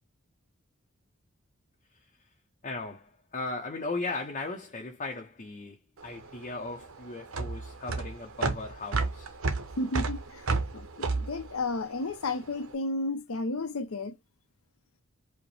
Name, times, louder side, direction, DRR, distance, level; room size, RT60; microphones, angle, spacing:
voice 1, 2.6-9.3, left 3 dB, 35° left, 0.6 m, -37 dB
sound 1, 6.0-12.5, right 3 dB, 80° right, 0.8 m, -32 dB
voice 2, 9.8-10.5 10.7-14.2, left 2 dB, 85° left, 0.7 m, -32 dB
4.9 x 2.1 x 3.1 m
head